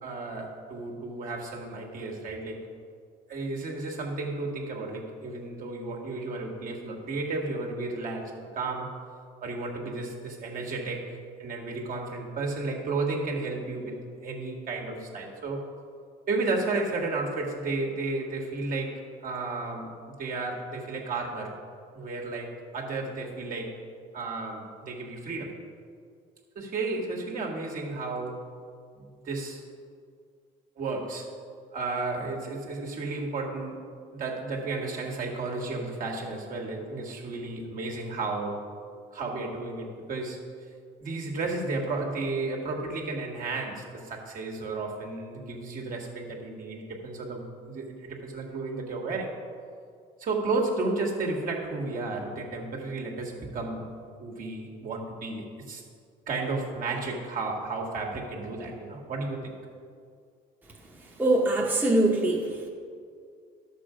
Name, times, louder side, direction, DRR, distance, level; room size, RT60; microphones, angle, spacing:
voice 1, 0.0-2.6 3.3-9.0 9.4-15.6 16.3-21.5 21.9-23.7 24.1-25.5 26.6-28.5 29.0-29.6 30.8-31.3 31.7-33.9 34.1-38.6 39.1-40.4 41.0-49.3 50.2-53.9 54.2-55.8 56.3-59.5, right 3 dB, 55° right, 0 dB, 1.8 m, -33 dB
voice 2, 61.2-62.7, right 1 dB, 10° right, -2 dB, 1.0 m, -23 dB
11.0 x 6.8 x 5.0 m, 2.2 s
cardioid pair, 110°, 17 cm